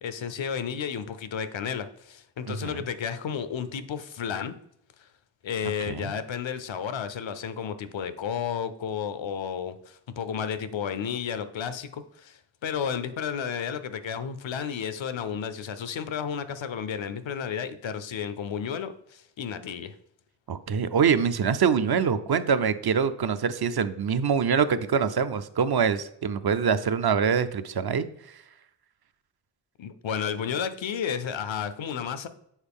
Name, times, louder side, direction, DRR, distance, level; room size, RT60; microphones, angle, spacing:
voice 1, 0.0-4.6 5.4-19.9 29.8-32.3, left 7 dB, 85° left, 12 dB, 0.6 m, -32 dB
voice 2, 2.5-2.8 5.9-6.1 20.5-28.1, right 6 dB, 55° right, 12 dB, 0.5 m, -24 dB
7.2 x 4.0 x 3.5 m, 0.73 s
wide cardioid pair, 60°, 44 cm